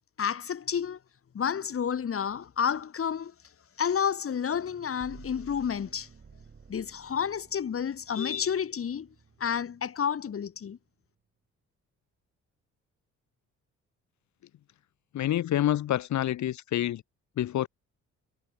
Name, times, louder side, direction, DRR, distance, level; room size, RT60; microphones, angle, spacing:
voice 1, 0.2-1.0 1.3-3.3 3.8-6.1 6.7-9.1 9.4-10.8, left 7 dB, 45° left, 2.7 m, -30 dB
sound 1, 4.5-10.8, right 5 dB, 35° right, 5.5 m, -54 dB
voice 2, 15.1-17.0 17.4-17.7, left 12 dB, 70° left, 1.5 m, -27 dB
cardioid pair, 90°, 30 cm